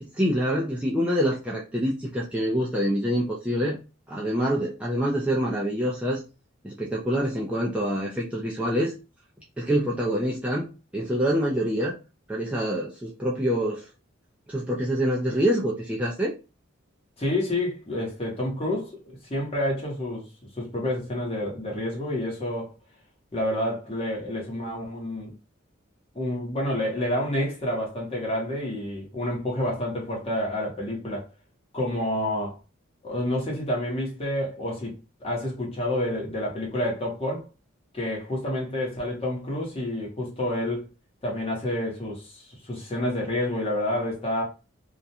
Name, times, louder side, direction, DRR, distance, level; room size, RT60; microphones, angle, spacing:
voice 1, 0.0-3.8 4.1-6.2 6.6-8.9 9.6-10.7 10.9-12.0 12.3-13.9 14.5-16.3, equal, 5° right, 0.4 m, -26 dB
voice 2, 17.2-20.3 20.6-22.7 23.3-25.3 26.1-31.2 31.7-32.6 33.0-34.9 35.2-37.5 37.9-40.9 41.2-44.4, left 1 dB, 30° left, 0.9 m, -29 dB
2.4 x 2.1 x 2.7 m
head